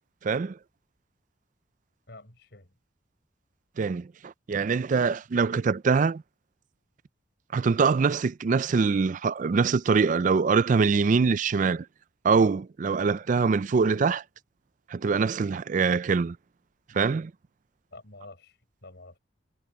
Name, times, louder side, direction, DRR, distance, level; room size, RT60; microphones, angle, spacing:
voice 1, 2.1-2.7 17.9-19.2, left 2 dB, 65° left, 5.9 m, -49 dB
voice 2, 3.8-6.2 7.5-11.8 12.2-14.2 14.9-16.4 16.9-17.3, right 5 dB, 45° right, 0.4 m, -24 dB
head